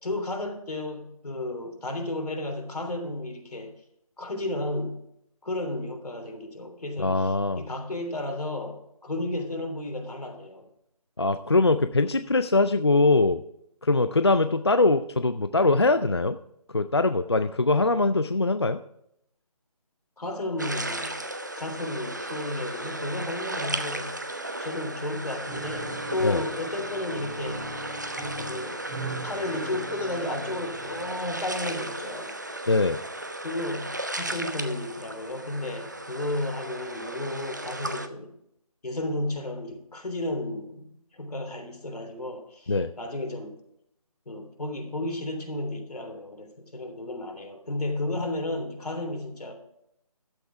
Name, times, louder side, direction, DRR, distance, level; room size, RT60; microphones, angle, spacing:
voice 1, 0.0-3.7 4.2-5.0 5.4-10.7 20.2-21.2 21.6-24.2 24.6-27.7 28.5-28.8 29.2-32.3 33.4-38.3 38.8-43.6 44.2-49.5, left 2 dB, 80° left, 4 dB, 3.3 m, -33 dB
voice 2, 7.0-7.6 11.2-13.4 13.8-16.4 16.7-18.8 26.2-26.4 32.7-33.0 42.7-42.9, left 3 dB, 45° left, 10 dB, 0.4 m, -22 dB
sound 1, 20.6-38.1, right 1 dB, 30° right, 0.6 m, -35 dB
Piano, 25.5-31.4, right 1 dB, ahead, 1.9 m, -40 dB
12.0 x 8.0 x 4.6 m, 0.75 s
figure-of-eight pair, 180°, 20 cm